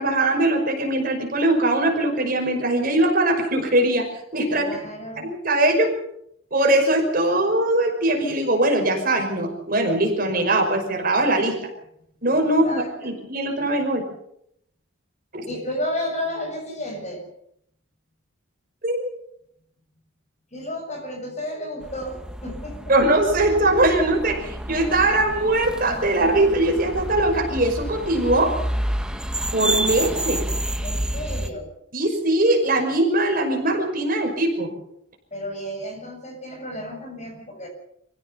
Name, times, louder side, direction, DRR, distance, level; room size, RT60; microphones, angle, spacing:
voice 1, 0.0-4.1 4.3-4.8 5.2-5.9 6.5-11.5 12.2-14.0 15.3-15.5 18.8-19.1 22.9-28.5 29.5-30.4 31.9-34.7, right 1 dB, 45° right, 3 dB, 5.5 m, -21 dB
voice 2, 4.5-5.3 12.4-13.2 15.4-17.3 20.5-22.9 30.8-31.7 35.3-37.7, left 1 dB, 35° left, 3 dB, 7.0 m, -32 dB
sound 1, 21.8-31.5, right 1 dB, 5° right, 1.2 m, -29 dB
26.5 x 16.0 x 6.9 m, 0.72 s
head